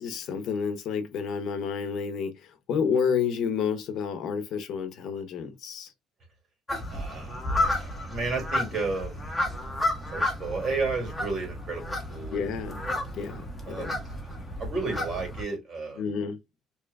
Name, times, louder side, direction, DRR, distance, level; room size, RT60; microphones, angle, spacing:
voice 1, 0.0-2.3 2.7-5.9 12.3-12.8 13.1-14.0 16.0-16.4, left 6 dB, 65° left, 0.8 m, -30 dB
sound 1, 6.7-15.4, left 1 dB, 5° left, 1.3 m, -32 dB
voice 2, 6.9-9.2 10.1-12.4 13.7-13.9 14.2-14.3 14.6-16.0, right 3 dB, 40° right, 2.3 m, -32 dB
4.4 x 3.0 x 2.3 m
cardioid pair, 125°, 0 cm